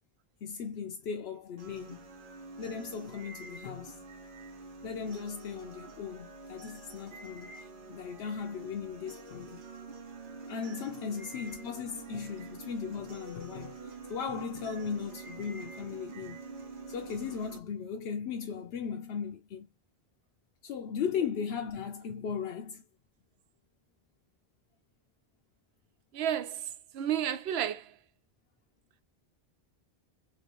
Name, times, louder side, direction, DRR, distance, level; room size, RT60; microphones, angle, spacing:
voice 1, 0.4-2.1 2.6-4.0 4.8-9.6 10.5-16.4 16.9-19.7 20.6-22.8, left 6 dB, 90° left, 0.9 m, -37 dB
sound 1, 1.6-17.6, right 4 dB, 60° right, 0.9 m, -46 dB
voice 2, 26.1-27.9, right 10 dB, 85° right, 0.8 m, -32 dB
3.0 x 2.9 x 2.9 m
omnidirectional pair, 1.0 m